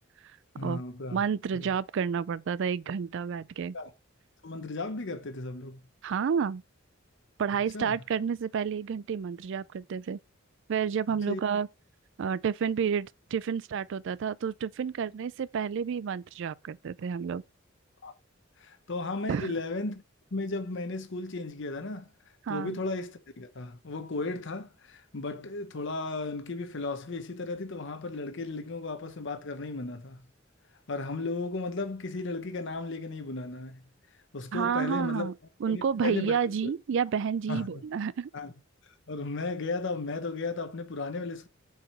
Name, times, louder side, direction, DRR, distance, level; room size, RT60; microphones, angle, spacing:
voice 1, 0.6-1.2 1.5-1.7 3.7-3.9 4.4-5.8 7.7-8.0 11.3-11.4 18.0-18.1 18.6-20.0 20.3-22.1 22.5-30.3 30.9-33.8 34.3-35.3 35.6-36.7 37.5-37.8 38.3-38.5 39.1-41.5, left 3 dB, 65° left, 0.9 m, -35 dB
voice 2, 1.1-3.8 6.0-6.6 7.4-10.2 10.7-11.7 12.2-17.4 19.3-19.5 22.4-22.8 34.5-35.3 35.6-38.3, right 7 dB, 65° right, 0.4 m, -30 dB
7.8 x 4.9 x 4.3 m
head